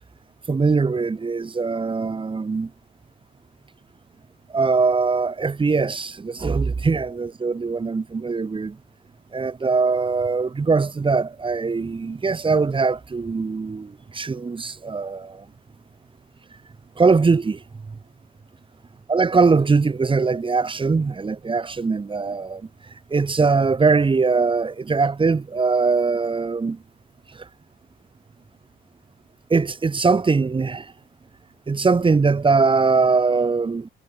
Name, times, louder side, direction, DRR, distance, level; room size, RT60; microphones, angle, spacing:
voice 1, 0.5-2.7 4.5-8.8 9.3-15.4 17.0-17.6 19.1-22.6 23.1-26.8 29.5-30.8 31.7-33.9, right 4 dB, 25° right, 1.2 m, -21 dB
cardioid pair, 90°, 20 cm